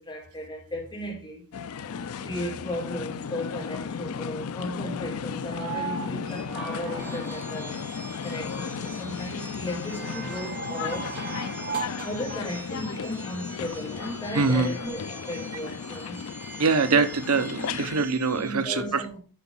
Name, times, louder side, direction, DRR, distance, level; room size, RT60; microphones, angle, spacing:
voice 1, 0.0-1.4 2.2-7.9 8.2-11.1 12.0-16.2 16.9-17.1 18.4-19.2, left 1 dB, 20° left, 4.0 m, -35 dB
sound 1, 1.5-18.1, left 6 dB, 70° left, 0.4 m, -35 dB
sound 2, 5.4-8.0 9.8-12.3 13.9-14.0, right 6 dB, 50° right, 5.0 m, -37 dB
sound 3, 7.0-18.5, right 3 dB, 10° right, 1.1 m, -45 dB
voice 2, 14.3-14.7 16.6-19.0, right 4 dB, 75° right, 1.0 m, -23 dB
9.2 x 5.2 x 5.6 m
head